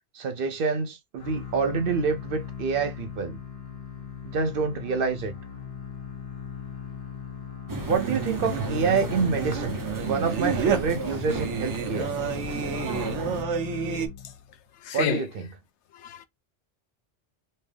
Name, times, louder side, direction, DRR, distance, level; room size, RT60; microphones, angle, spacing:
voice 1, 0.1-3.4 4.2-5.3 7.8-9.8 10.0-12.1 14.9-15.5, right 5 dB, 60° right, 0.7 m, -27 dB
sound 1, 1.2-14.6, left 8 dB, 65° left, 1.2 m, -39 dB
sound 2, 7.7-13.4, right 2 dB, 25° right, 0.5 m, -35 dB
Singing, 7.9-14.1, right 7 dB, 80° right, 1.0 m, -30 dB
voice 2, 14.8-15.2 15.9-16.3, left 8 dB, 80° left, 0.9 m, -29 dB
3.2 x 2.7 x 3.4 m
omnidirectional pair, 1.2 m